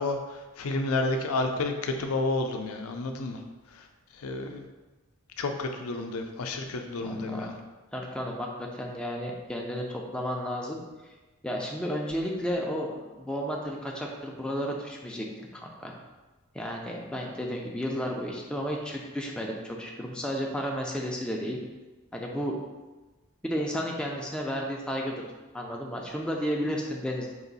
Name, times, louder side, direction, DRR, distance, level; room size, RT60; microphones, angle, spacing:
voice 1, 0.0-3.4 3.7-3.9 4.1-4.6 5.4-7.5, left 2 dB, 75° left, 4 dB, 0.5 m, -30 dB
voice 2, 7.0-7.5 7.9-10.8 11.4-15.9 16.5-21.6 22.1-22.5 23.4-25.2 25.5-27.3, equal, 5° left, -1 dB, 0.5 m, -32 dB
4.8 x 2.6 x 4.0 m, 1.2 s
head